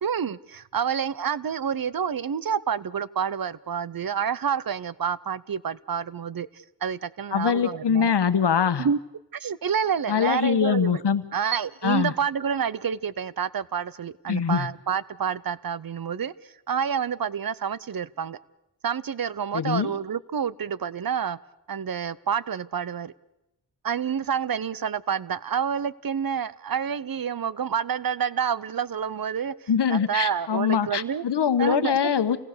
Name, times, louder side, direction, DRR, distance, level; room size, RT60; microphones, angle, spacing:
voice 1, 0.0-8.1 8.8-9.0 9.3-11.0 11.3-16.3 16.7-18.4 18.8-21.4 21.7-23.1 23.8-31.2 31.6-32.0, right 7 dB, 55° right, 18 dB, 0.8 m, -28 dB
voice 2, 7.3-8.9 10.1-11.2 11.8-12.1 14.3-14.7 19.5-19.9 29.7-32.4, left 7 dB, 75° left, 11 dB, 1.2 m, -23 dB
27.5 x 18.5 x 6.7 m, 0.90 s
wide cardioid pair, 70°, 42 cm